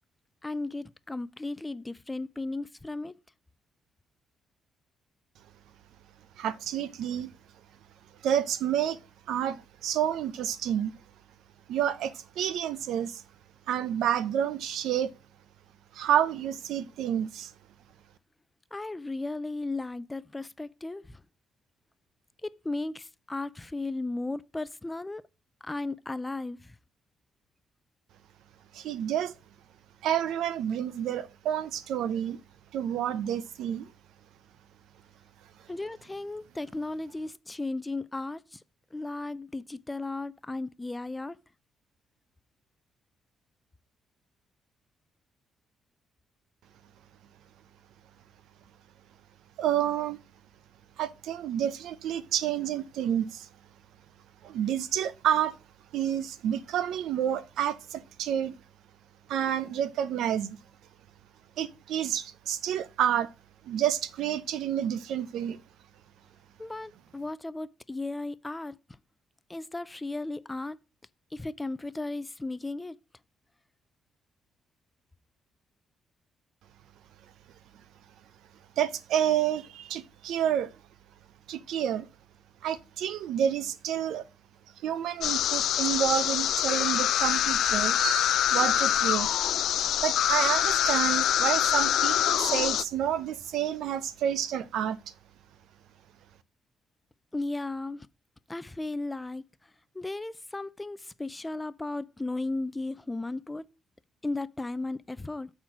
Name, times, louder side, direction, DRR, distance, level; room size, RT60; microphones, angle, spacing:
voice 1, 0.4-3.1 18.7-21.2 22.4-25.2 25.6-26.7 35.7-38.6 38.9-41.4 66.6-68.8 69.5-70.8 71.3-73.0 97.3-98.1 98.5-99.5 99.9-103.7 104.2-105.5, left 2 dB, 15° left, 0.4 m, -35 dB
voice 2, 6.4-7.3 8.2-9.0 9.3-11.0 11.7-13.2 13.7-15.1 15.9-17.5 28.7-29.3 30.0-32.4 32.7-33.9 49.6-50.2 51.0-53.5 54.4-55.6 55.9-58.6 59.3-60.6 61.6-63.3 63.6-65.6 78.8-80.8 81.5-82.1 82.6-84.3 84.8-89.3 90.0-95.0, right 10 dB, 80° right, 0.6 m, -29 dB
sound 1, 85.2-92.8, left 11 dB, 75° left, 0.3 m, -25 dB
7.6 x 4.4 x 6.1 m
cardioid pair, 90°, 0 cm